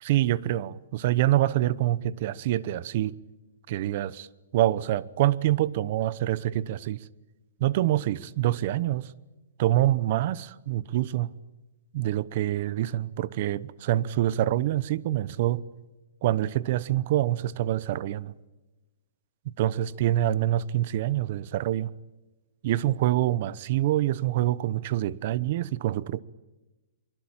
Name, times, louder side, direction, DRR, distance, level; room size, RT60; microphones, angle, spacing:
voice 1, 0.0-3.1 3.7-4.3 4.5-7.0 7.6-9.1 9.6-11.3 11.9-15.6 16.2-18.3 19.6-21.9 22.6-26.2, right 13 dB, 40° right, 1.0 m, -26 dB
25.0 x 23.5 x 8.9 m
hypercardioid pair, 165°, 0 cm